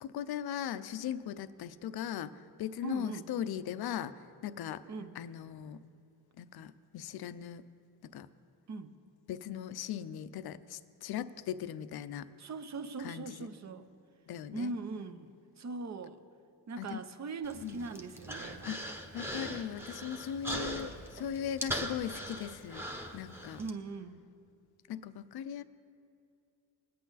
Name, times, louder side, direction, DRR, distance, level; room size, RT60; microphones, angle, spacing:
voice 1, 0.0-2.3 2.6-4.8 5.2-5.8 6.4-7.6 8.1-8.3 9.3-12.3 13.0-13.5 14.3-14.7 16.8-17.0 17.6-17.8 18.6-22.9 23.1-23.6 24.9-25.6, left 9 dB, 55° left, 14 dB, 0.6 m, -39 dB
voice 2, 2.8-3.3 4.9-5.2 8.7-8.9 12.4-13.9 14.5-15.3 15.6-16.2 16.7-19.0 23.6-24.2, right 3 dB, 35° right, 9 dB, 0.8 m, -40 dB
Human voice, 17.4-23.7, equal, 5° right, 1.1 m, -40 dB
20.0 x 8.5 x 4.1 m, 2.5 s
cardioid pair, 100°, 45 cm